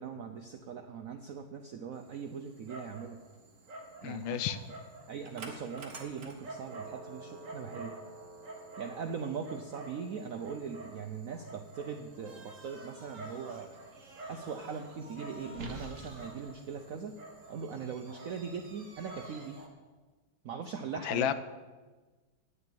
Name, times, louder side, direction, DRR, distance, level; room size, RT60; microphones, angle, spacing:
voice 1, 0.0-3.2 4.0-4.4 5.1-8.0 8.8-13.8 14.3-17.2 17.5-19.6 20.4-21.3, right 6 dB, 75° right, 6 dB, 0.8 m, -40 dB
Dog, 1.9-19.7, right 2 dB, 45° right, 1.7 m, -48 dB
voice 2, 4.0-4.6 21.0-21.3, left 10 dB, 75° left, 12 dB, 1.3 m, -31 dB
9.3 x 6.7 x 8.8 m, 1.3 s
omnidirectional pair, 2.2 m